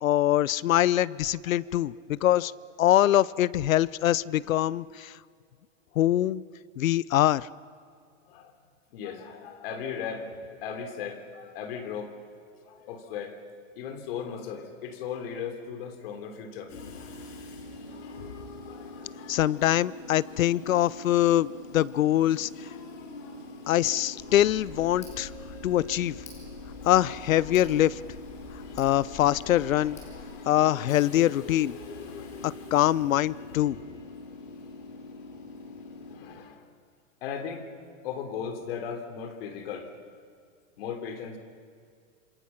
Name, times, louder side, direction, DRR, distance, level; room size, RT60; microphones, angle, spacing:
voice 1, 0.0-2.5 2.8-5.1 6.0-6.4 6.8-7.5 19.3-22.5 23.7-25.3 25.6-26.2 26.9-28.0 28.8-30.0 30.5-31.7 32.4-33.8, left 13 dB, 90° left, 21 dB, 0.8 m, -23 dB
voice 2, 8.9-12.1 12.6-13.4 13.7-16.7 18.6-19.1 36.1-36.7 37.2-37.7 38.0-39.9 40.8-41.4, left 7 dB, 45° left, 6 dB, 3.3 m, -37 dB
Train / Subway metro underground, 16.7-36.2, left 3 dB, 70° left, 5.4 m, -43 dB
Tick, 24.2-30.2, left 4 dB, 20° left, 5.4 m, -47 dB
27.0 x 27.0 x 5.9 m, 2.2 s
supercardioid pair, 165°, 39 cm